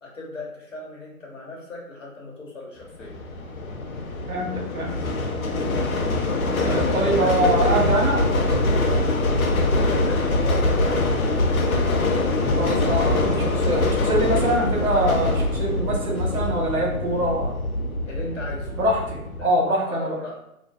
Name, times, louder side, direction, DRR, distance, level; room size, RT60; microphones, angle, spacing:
voice 1, 0.0-3.1 6.8-7.6 9.5-11.9 18.1-18.7 19.4-19.5 19.9-20.3, left 3 dB, 55° left, -4 dB, 1.0 m, -36 dB
sound 1, 3.0-19.5, left 2 dB, 70° left, 0.5 m, -23 dB
voice 2, 4.3-5.0 6.5-8.2 12.6-17.5 18.7-20.2, right 1 dB, 70° right, -1 dB, 1.0 m, -24 dB
2.6 x 2.1 x 2.3 m, 0.82 s
figure-of-eight pair, 175°, 44 cm